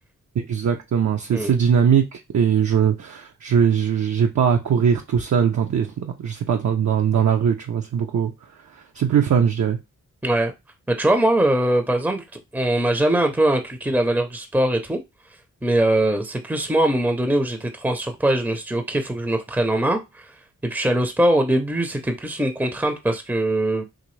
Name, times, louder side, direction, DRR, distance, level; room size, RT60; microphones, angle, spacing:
voice 1, 0.4-8.3 8.7-9.8, right 7 dB, 60° right, 0.6 m, -20 dB
voice 2, 10.9-12.2 12.5-15.0 15.6-20.3 20.6-23.8, right 1 dB, 5° right, 0.6 m, -21 dB
3.8 x 2.6 x 3.1 m
cardioid pair, 55°, 33 cm